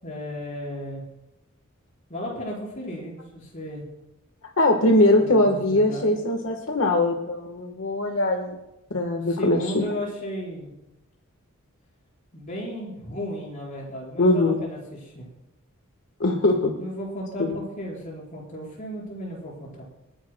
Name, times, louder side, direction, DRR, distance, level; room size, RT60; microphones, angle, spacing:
voice 1, 0.0-1.0 2.1-3.8 5.1-6.1 9.3-10.7 12.3-15.3 16.8-19.8, equal, 35° left, -4 dB, 4.7 m, -34 dB
voice 2, 4.6-8.5 8.9-9.8 14.2-14.6 16.2-16.7 17.4-17.5, left 1 dB, 65° left, 2 dB, 1.4 m, -21 dB
29.0 x 10.5 x 2.2 m, 0.92 s
head